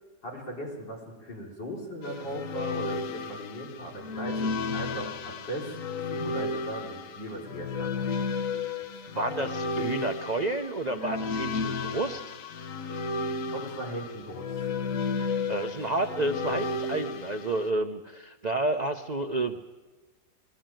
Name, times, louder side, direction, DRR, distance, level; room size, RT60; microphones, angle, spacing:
voice 1, 0.2-5.7 6.1-8.3 8.7-8.8 13.5-14.6 15.2-15.3, right 1 dB, 75° left, -2 dB, 5.0 m, -38 dB
sound 1, 2.0-17.7, left 3 dB, 55° left, 1.0 m, -33 dB
voice 2, 9.2-12.2 15.0-19.6, right 2 dB, 50° right, 6 dB, 0.5 m, -30 dB
21.0 x 14.5 x 9.1 m, 1.2 s
omnidirectional pair, 1.9 m